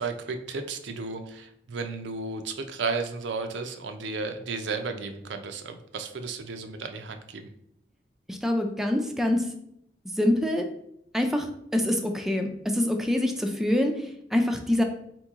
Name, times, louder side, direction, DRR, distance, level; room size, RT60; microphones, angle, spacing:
voice 1, 0.0-7.5, right 4 dB, 80° right, 6 dB, 0.5 m, -33 dB
voice 2, 8.3-9.4 10.2-10.7 11.1-11.5 11.7-13.9 14.3-14.8, left 1 dB, ahead, 3 dB, 0.4 m, -25 dB
4.4 x 3.0 x 3.5 m, 0.74 s
head